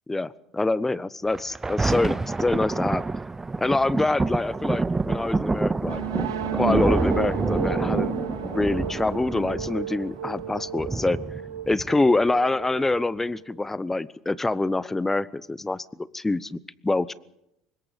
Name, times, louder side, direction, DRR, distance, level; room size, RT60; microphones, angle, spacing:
voice 1, 0.1-3.0 3.6-6.0 6.5-11.2 11.7-17.1, left 2 dB, 15° left, 19 dB, 0.9 m, -25 dB
Thunder, 1.3-12.3 12.9-13.0, right 3 dB, 15° right, 0.7 m, -28 dB
sound 1, 5.8-13.5, right 8 dB, 90° right, 2.2 m, -33 dB
24.5 x 21.5 x 5.3 m, 0.84 s
hypercardioid pair, 70°, 2 cm